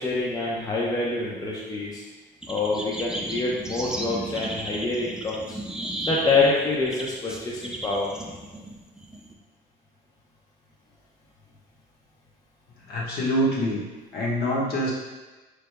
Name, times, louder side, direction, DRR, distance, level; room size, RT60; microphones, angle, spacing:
voice 1, 0.0-2.0 2.5-5.6 6.0-8.1, left 3 dB, 20° left, -4 dB, 0.7 m, -26 dB
sound 1, 2.4-9.3, right 1 dB, 5° right, 0.4 m, -34 dB
voice 2, 12.9-13.8 14.1-14.9, equal, 65° left, -5 dB, 1.3 m, -25 dB
4.9 x 3.3 x 2.2 m, 1.2 s
cardioid pair, 110°, 17 cm